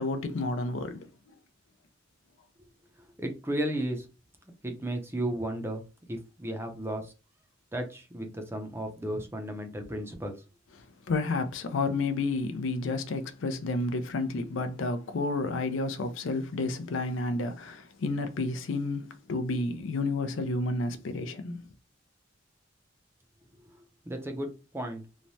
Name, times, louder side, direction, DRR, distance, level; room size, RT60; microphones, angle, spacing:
voice 1, 0.0-1.4 11.1-21.7, left 3 dB, 85° left, 0.4 m, -31 dB
voice 2, 3.2-4.1 4.6-5.8 6.1-7.1 7.7-10.3 24.1-24.5 24.7-25.0, right 1 dB, 15° right, 0.5 m, -34 dB
3.1 x 2.1 x 2.6 m
head